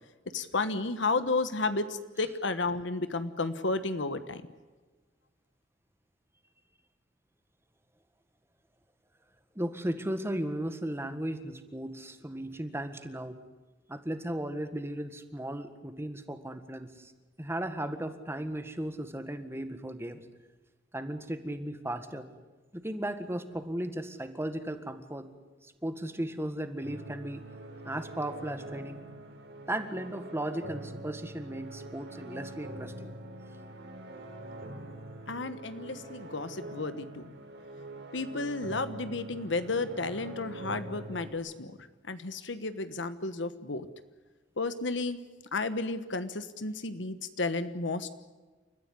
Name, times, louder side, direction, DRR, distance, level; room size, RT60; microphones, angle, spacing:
voice 1, 0.3-4.4 35.3-37.3 38.1-41.8 42.0-43.9 44.6-45.2 45.5-48.1, left 3 dB, 80° left, 11 dB, 1.3 m, -32 dB
voice 2, 9.6-13.4 13.9-17.1 17.4-20.2 20.9-22.3 22.7-25.3 25.6-27.4 27.8-29.0 29.7-33.1, right 1 dB, 15° right, 9 dB, 1.7 m, -36 dB
sound 1, 26.8-41.3, right 1 dB, 65° right, 4.5 m, -44 dB
29.5 x 14.5 x 9.8 m, 1.3 s
head